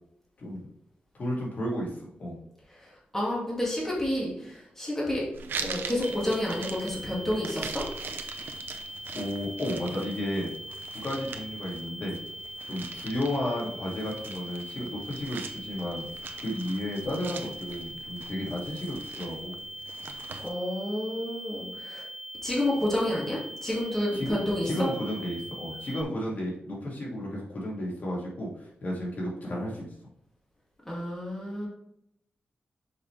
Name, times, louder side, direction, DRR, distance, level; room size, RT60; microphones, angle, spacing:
voice 1, 1.2-2.4 9.1-10.5 10.9-12.2 12.7-16.1 16.4-19.5 24.1-24.4 24.6-29.9, left 1 dB, 55° left, -4 dB, 2.4 m, -33 dB
voice 2, 2.8-5.2 5.6-7.8 20.4-22.1 22.4-24.9 30.8-31.7, left 1 dB, 10° left, -5 dB, 2.2 m, -30 dB
sound 1, 5.3-20.5, right 5 dB, 90° right, 0.7 m, -42 dB
sound 2, 6.0-26.0, equal, 5° right, 0.4 m, -41 dB
6.6 x 5.2 x 3.3 m, 0.78 s
wide cardioid pair, 130°, 3 cm